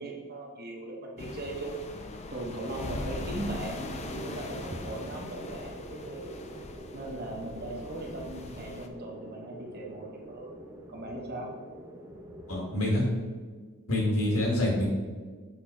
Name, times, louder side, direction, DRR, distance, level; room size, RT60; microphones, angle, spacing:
voice 1, 0.0-1.8 2.3-6.4 6.9-10.5 10.9-11.5, right 2 dB, 45° right, -1 dB, 1.1 m, -39 dB
sound 1, 1.2-8.9, left 2 dB, 30° left, 0.4 m, -41 dB
sound 2, 3.7-13.0, right 1 dB, 15° right, 0.6 m, -46 dB
voice 2, 12.5-13.1 13.9-14.9, left 1 dB, 65° left, -2 dB, 1.8 m, -26 dB
6.1 x 3.7 x 4.6 m, 1.4 s
head